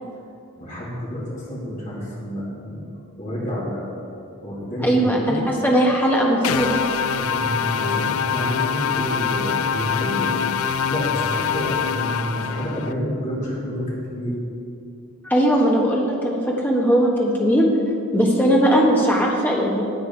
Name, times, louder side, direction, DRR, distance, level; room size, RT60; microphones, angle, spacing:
voice 1, 0.6-2.9 3.2-3.8 4.4-5.5 7.2-10.4 10.9-14.4, equal, 35° left, -6 dB, 3.0 m, -29 dB
voice 2, 4.8-6.8 15.2-17.7 18.1-19.9, equal, 10° left, -2 dB, 1.4 m, -19 dB
sound 1, 6.4-12.9, left 7 dB, 70° left, 0.4 m, -24 dB
13.0 x 8.4 x 4.7 m, 2.6 s
head